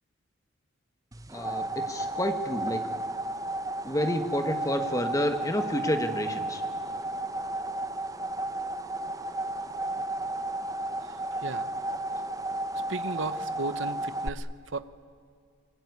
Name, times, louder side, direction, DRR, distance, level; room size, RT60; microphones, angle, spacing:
sound 1, 1.1-14.3, right 2 dB, 15° right, 0.8 m, -33 dB
voice 1, 1.3-2.8 3.8-6.6, equal, 15° left, 7 dB, 1.3 m, -29 dB
voice 2, 11.0-11.7 12.9-14.9, right 3 dB, 70° right, 14 dB, 1.0 m, -36 dB
25.5 x 22.0 x 9.6 m, 2.1 s
head